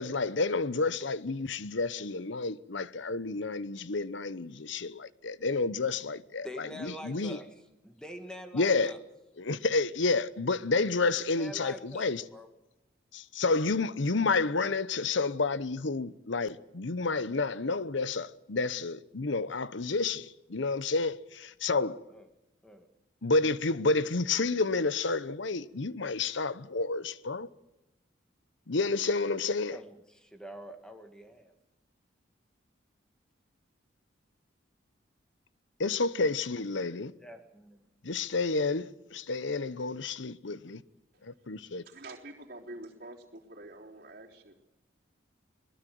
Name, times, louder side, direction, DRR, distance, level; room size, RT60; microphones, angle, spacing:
voice 1, 0.0-6.5 6.8-7.4 8.5-8.9 9.4-12.2 13.1-22.0 23.2-27.5 28.7-29.8 35.8-37.1 38.0-40.8 41.2-41.8, left 3 dB, 70° left, 0.9 m, -30 dB
voice 2, 6.4-9.0 11.1-12.5 21.8-22.3 22.6-22.9 29.7-31.6 37.2-37.8, equal, 5° left, 1.9 m, -46 dB
voice 3, 41.8-44.5, right 2 dB, 45° right, 3.7 m, -46 dB
22.0 x 20.0 x 7.8 m
head